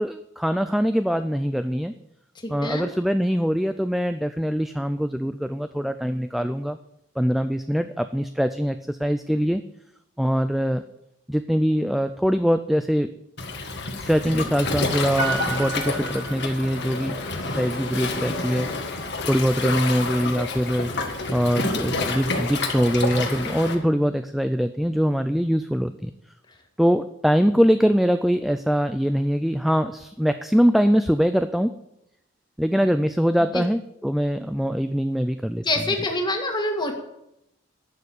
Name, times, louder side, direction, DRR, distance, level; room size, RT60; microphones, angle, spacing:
voice 1, 0.0-1.9 2.5-6.8 7.2-9.6 10.2-10.8 11.3-13.1 14.0-17.2 17.5-20.9 21.3-26.1 26.8-31.8 32.6-35.6, equal, ahead, 10 dB, 0.3 m, -23 dB
voice 2, 2.4-2.9 33.5-33.6 35.6-36.9, left 2 dB, 20° left, 3 dB, 1.9 m, -25 dB
Waves surf, 13.4-23.8, left 3 dB, 60° left, 1.7 m, -28 dB
Piano, 15.2-17.0 17.3-17.4, right 5 dB, 25° right, 2.7 m, -32 dB
11.5 x 6.8 x 8.6 m, 0.82 s
head